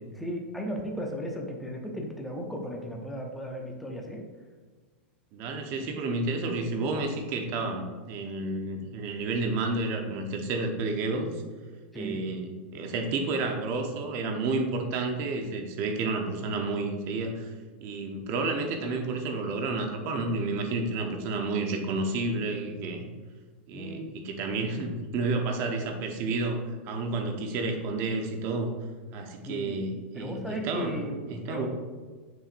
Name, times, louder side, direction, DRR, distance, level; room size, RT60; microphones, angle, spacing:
voice 1, 0.2-4.2 11.9-12.3 23.7-24.1 29.4-29.9 30.1-31.7, equal, ahead, 0 dB, 0.7 m, -36 dB
voice 2, 5.3-11.3 11.9-17.5 17.8-23.0 23.7-28.7 29.1-31.7, right 3 dB, 40° right, 4 dB, 0.9 m, -31 dB
7.0 x 6.0 x 2.6 m, 1.4 s
supercardioid pair, 150°, 6 cm